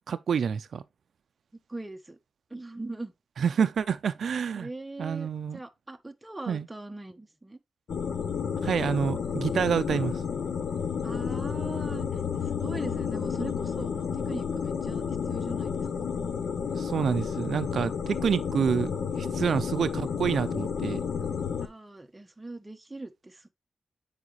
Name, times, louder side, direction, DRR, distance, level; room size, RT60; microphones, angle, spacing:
voice 1, 0.1-0.8 3.4-4.7 5.0-5.6 6.5-6.7 8.6-10.2 16.8-18.9 19.2-21.0, right 7 dB, 85° right, 0.4 m, -28 dB
voice 2, 1.7-2.2 2.5-3.1 4.5-7.6 11.0-15.9 21.6-23.5, right 2 dB, 20° right, 1.0 m, -41 dB
sound 1, 7.9-21.7, left 6 dB, 85° left, 0.6 m, -31 dB
7.3 x 4.8 x 3.0 m
cardioid pair, 75°, 0 cm